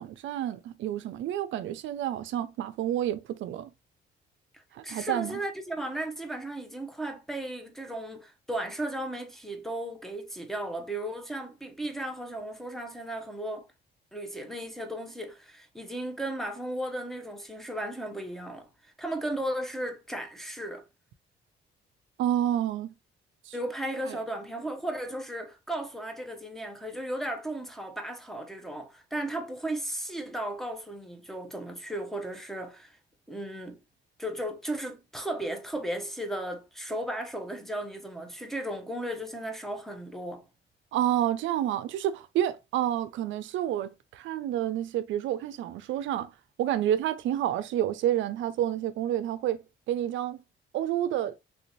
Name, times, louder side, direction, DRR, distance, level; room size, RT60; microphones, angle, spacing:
voice 1, 0.0-3.7 4.7-5.4 22.2-22.9 23.5-23.6 24.1-24.2 40.9-46.3 46.6-50.4 50.7-51.4, right 11 dB, 75° right, 0.4 m, -29 dB
voice 2, 4.5-13.7 14.1-20.9 23.5-33.0 33.3-33.8 34.2-40.4, right 1 dB, ahead, 0.8 m, -35 dB
3.3 x 2.7 x 2.9 m
cardioid pair, 90°, 20 cm